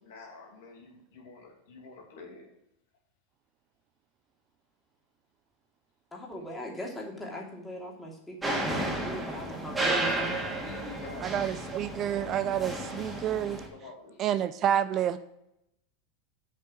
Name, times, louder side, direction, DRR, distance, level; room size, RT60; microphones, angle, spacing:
voice 1, 0.0-2.5 6.4-6.5 10.6-11.3 13.7-14.3, left 3 dB, 70° left, 0 dB, 2.5 m, -48 dB
voice 2, 6.1-10.3, equal, 10° left, -1 dB, 2.7 m, -39 dB
sound 1, 8.4-13.7, right 2 dB, 10° right, 2.3 m, -32 dB
voice 3, 11.2-13.6 14.2-15.2, right 10 dB, 40° right, 14 dB, 0.4 m, -29 dB
7.4 x 5.7 x 5.9 m, 0.82 s
hypercardioid pair, 90°, 0 cm